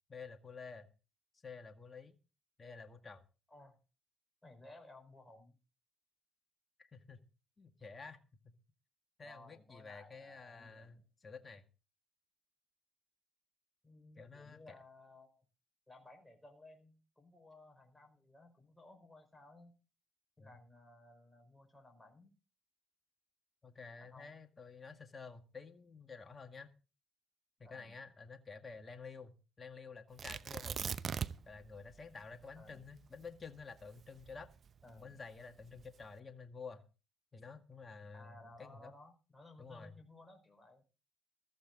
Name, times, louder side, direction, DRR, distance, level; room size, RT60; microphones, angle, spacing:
voice 1, 0.1-0.9 1.4-2.2 2.6-3.2 6.8-7.2 7.6-8.2 8.4-8.5 9.2-11.6 14.2-14.8 20.4-20.6 23.6-26.7 27.6-30.8 31.5-34.5 35.0-36.8 37.3-38.9 39.6-39.9, left 4 dB, 35° left, 7 dB, 1.9 m, -51 dB
voice 2, 4.4-5.6 9.2-11.0 13.8-15.5 15.9-19.7 20.4-22.3 24.0-24.3 27.6-28.0 32.6-32.8 34.8-35.1 38.1-40.8, left 2 dB, 10° left, 3 dB, 5.1 m, -58 dB
Tearing, 30.2-31.6 31.9-32.0 32.5-34.9 35.6-36.0, right 7 dB, 50° right, 0.9 m, -40 dB
14.5 x 14.5 x 4.0 m, 0.33 s
hypercardioid pair, 55°, 0 cm